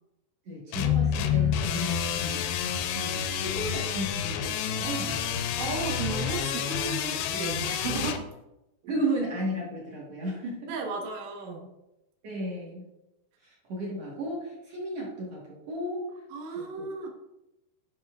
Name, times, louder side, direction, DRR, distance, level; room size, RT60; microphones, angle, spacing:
voice 1, 0.4-5.2 8.9-10.7 12.2-12.9 13.4-16.0 16.5-16.9, right 1 dB, 65° right, -4 dB, 1.5 m, -34 dB
sound 1, 0.7-8.2, left 8 dB, 85° left, 2.3 m, -29 dB
voice 2, 5.6-8.3 8.8-9.0 10.7-11.7 16.3-17.1, right 4 dB, 90° right, 1 dB, 1.5 m, -34 dB
10.5 x 5.5 x 2.4 m, 0.92 s
omnidirectional pair, 5.0 m